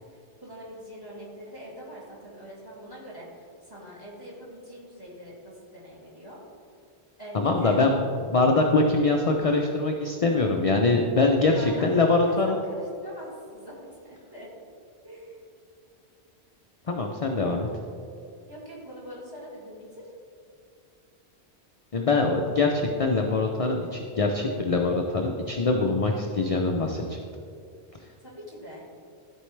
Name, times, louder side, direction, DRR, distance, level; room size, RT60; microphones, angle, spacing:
voice 1, 0.0-6.4 7.2-7.8 11.5-13.8 14.0-14.5 15.0-15.4 18.5-20.1 28.2-28.9, equal, 20° right, -6 dB, 2.2 m, -43 dB
voice 2, 7.3-8.0 8.2-12.6 16.9-17.7 21.9-27.2, left 3 dB, 45° left, 2 dB, 0.5 m, -23 dB
13.5 x 4.5 x 3.2 m, 2.4 s
omnidirectional pair, 1.1 m